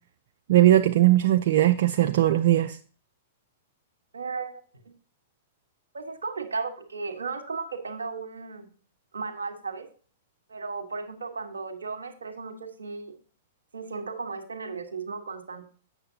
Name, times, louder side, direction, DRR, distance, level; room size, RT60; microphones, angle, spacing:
voice 1, 0.5-2.8, right 14 dB, 65° right, 6 dB, 0.5 m, -19 dB
voice 2, 4.1-4.9 5.9-8.7 9.1-9.9 10.5-13.1 13.7-15.7, right 4 dB, 90° right, 6 dB, 1.3 m, -35 dB
8.0 x 6.7 x 2.7 m, 0.41 s
hypercardioid pair, 115°, 0 cm